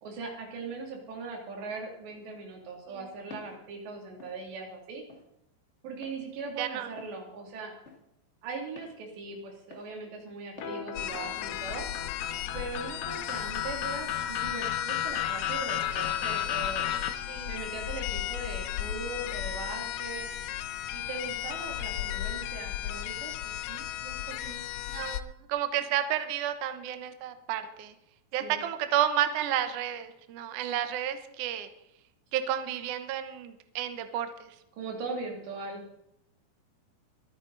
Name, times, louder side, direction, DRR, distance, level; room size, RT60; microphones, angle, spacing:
voice 1, 0.0-5.0 5.8-7.7 8.4-11.9 12.5-16.8 17.5-20.2 20.9-24.6 28.4-28.6 34.7-35.8, right 3 dB, 85° right, 1 dB, 5.0 m, -40 dB
Walk footsteps, 3.3-3.6 4.2-4.4 5.1-5.3 6.0-6.2 7.0-7.2 7.9-8.0 8.8-9.0 9.7-9.9 10.6-10.8, left 3 dB, 40° left, 1.0 m, -48 dB
voice 2, 6.6-6.9 17.3-17.5 24.9-27.9 28.3-31.7 32.3-34.3, right 10 dB, 65° right, 9 dB, 2.1 m, -31 dB
sound 1, 10.6-17.1, left 10 dB, 65° left, 2.0 m, -33 dB
sound 2, 11.0-25.2, left 12 dB, 80° left, 2.5 m, -35 dB
24.0 x 9.7 x 4.0 m, 0.81 s
omnidirectional pair, 4.8 m